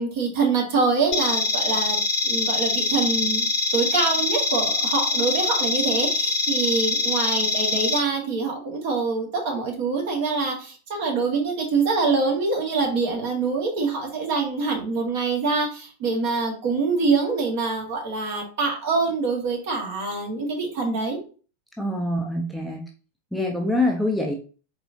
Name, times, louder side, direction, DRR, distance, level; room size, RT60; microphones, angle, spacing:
voice 1, 0.0-2.0 2.2-21.2, right 4 dB, 50° right, 1 dB, 1.7 m, -25 dB
sound 1, 1.1-8.0, left 2 dB, 40° left, 0.8 m, -24 dB
voice 2, 21.8-22.9 23.3-24.3, left 1 dB, ahead, 1 dB, 0.6 m, -25 dB
4.1 x 3.8 x 2.8 m, 0.38 s
figure-of-eight pair, 90°, 0 cm